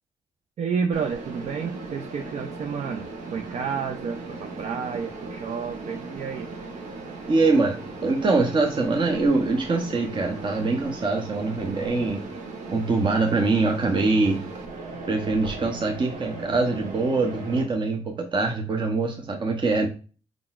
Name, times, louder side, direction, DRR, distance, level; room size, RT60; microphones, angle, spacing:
voice 1, 0.6-6.5, right 6 dB, 65° right, 5 dB, 0.4 m, -30 dB
Mechanisms, 0.9-17.6, right 3 dB, 85° right, 1.0 m, -37 dB
voice 2, 7.3-12.2 12.7-14.4 15.1-19.9, right 3 dB, 40° right, 2 dB, 0.8 m, -23 dB
4.7 x 3.8 x 2.4 m, 0.36 s
supercardioid pair, 55°, 12 cm